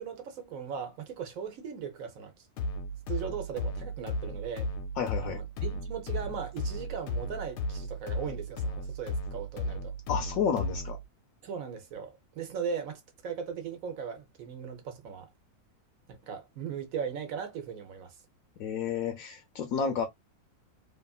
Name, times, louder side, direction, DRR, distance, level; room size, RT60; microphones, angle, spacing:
voice 1, 0.0-2.3 3.1-4.7 5.2-9.9 11.4-15.3 16.1-18.1, right 7 dB, 65° right, 1.1 m, -38 dB
sound 1, 2.6-11.1, left 1 dB, 90° left, 1.2 m, -35 dB
voice 2, 5.0-5.4 10.1-11.0 18.6-20.1, left 7 dB, 70° left, 0.9 m, -31 dB
2.9 x 2.4 x 2.3 m
omnidirectional pair, 1.7 m